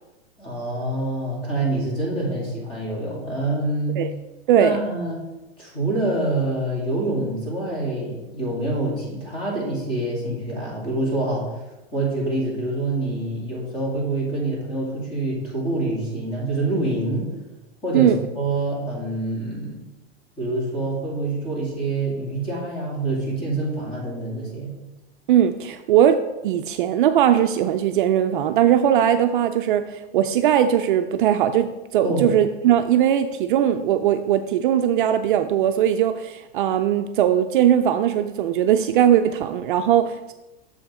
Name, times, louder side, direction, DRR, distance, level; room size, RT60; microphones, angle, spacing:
voice 1, 0.4-4.0 4.6-5.2 5.6-17.3 17.8-19.8 20.4-24.8 32.0-32.3, right 2 dB, 15° left, -4 dB, 2.4 m, -26 dB
voice 2, 25.3-26.2 26.4-40.3, right 10 dB, 55° right, 8 dB, 0.4 m, -19 dB
7.1 x 5.1 x 4.8 m, 1.0 s
supercardioid pair, 160°, 32 cm